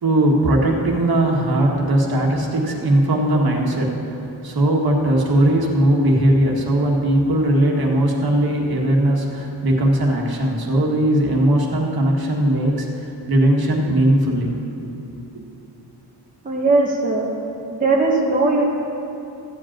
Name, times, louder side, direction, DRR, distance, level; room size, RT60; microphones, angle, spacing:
voice 1, 0.0-14.6 15.1-15.5, right 1 dB, 60° right, -1 dB, 1.7 m, -19 dB
voice 2, 16.4-17.3 17.7-18.6, right 3 dB, 20° right, -3 dB, 1.1 m, -18 dB
14.0 x 5.2 x 8.8 m, 3.0 s
wide cardioid pair, 165°, 42 cm